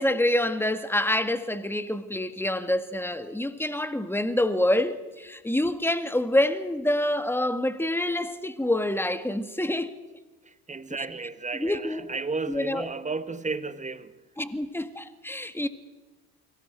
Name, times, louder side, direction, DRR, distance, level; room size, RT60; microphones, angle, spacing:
voice 1, 0.0-9.9 11.0-11.1 11.6-12.0 12.5-12.9 14.4-15.7, left 1 dB, 5° left, 1.9 m, -26 dB
voice 2, 10.4-14.2, right 4 dB, 15° right, 1.4 m, -33 dB
29.0 x 25.0 x 4.6 m
hypercardioid pair, 65°, 47 cm